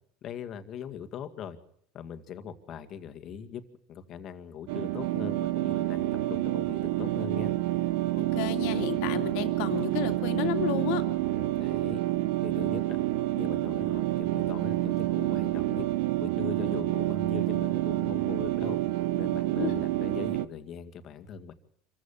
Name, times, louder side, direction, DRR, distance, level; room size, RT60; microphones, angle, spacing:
voice 1, 0.2-1.6 1.9-3.6 3.9-7.5 11.3-12.0 12.4-13.0 13.3-15.8 16.2-18.8 19.2-21.5, left 8 dB, 45° left, 9 dB, 2.1 m, -40 dB
sound 1, 4.7-20.5, right 16 dB, 80° right, 0.9 m, -28 dB
voice 2, 8.2-11.0 19.6-19.8, left 14 dB, 75° left, 7 dB, 2.5 m, -32 dB
26.0 x 15.0 x 7.3 m, 0.70 s
supercardioid pair, 115°, 0 cm